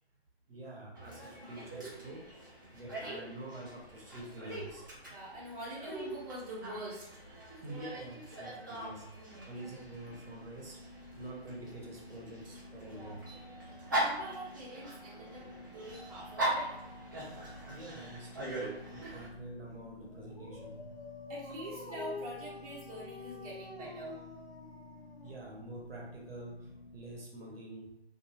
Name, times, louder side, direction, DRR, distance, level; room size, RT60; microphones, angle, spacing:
voice 1, 0.5-4.9 7.5-13.2 17.3-17.4 17.7-20.8 25.2-27.9, right 1 dB, 60° right, -1 dB, 0.9 m, -47 dB
Dog, 0.9-19.3, right 1 dB, 20° right, 0.5 m, -41 dB
voice 2, 5.1-7.1 12.8-13.2 13.9-15.5 15.7-16.7 21.3-24.2, right 1 dB, 35° right, -5 dB, 0.8 m, -45 dB
sound 1, 9.8-27.2, left 2 dB, 60° left, 0.6 m, -53 dB
Dog 2, 20.1-25.7, left 4 dB, 90° left, 0.9 m, -47 dB
2.6 x 2.3 x 2.7 m, 0.84 s
figure-of-eight pair, 150°, 32 cm